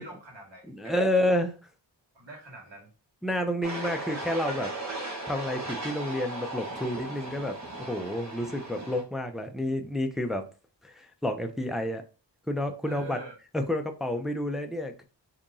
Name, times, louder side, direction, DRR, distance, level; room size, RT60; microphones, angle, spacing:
voice 1, 0.0-1.0 2.1-2.9 12.8-13.4, right 2 dB, 70° right, -1 dB, 1.6 m, -45 dB
voice 2, 0.7-1.5 3.2-4.7 5.3-7.6 7.9-10.5 10.8-12.0 12.5-13.2 13.5-15.0, left 1 dB, ahead, 5 dB, 0.4 m, -29 dB
sound 1, 3.6-9.0, right 2 dB, 40° right, 1.0 m, -37 dB
2.9 x 2.6 x 3.7 m, 0.33 s
wide cardioid pair, 85°, 45 cm